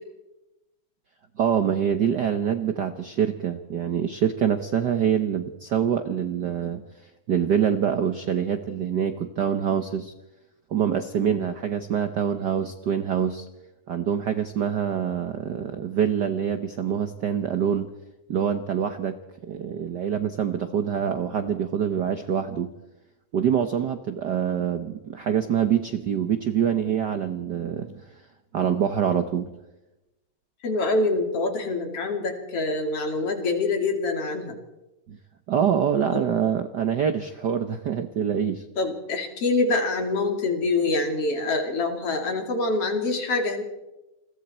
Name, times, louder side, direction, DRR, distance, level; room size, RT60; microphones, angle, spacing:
voice 1, 1.4-6.8 7.3-10.1 10.7-13.5 13.9-17.9 18.3-19.2 19.4-22.7 23.3-28.0 28.5-29.5 35.1-35.2 35.5-38.6, right 8 dB, 85° right, 9 dB, 0.9 m, -25 dB
voice 2, 30.6-34.6 36.1-36.2 38.8-43.6, left 3 dB, 55° left, 4 dB, 3.7 m, -25 dB
28.5 x 21.5 x 4.4 m, 0.97 s
omnidirectional pair, 3.3 m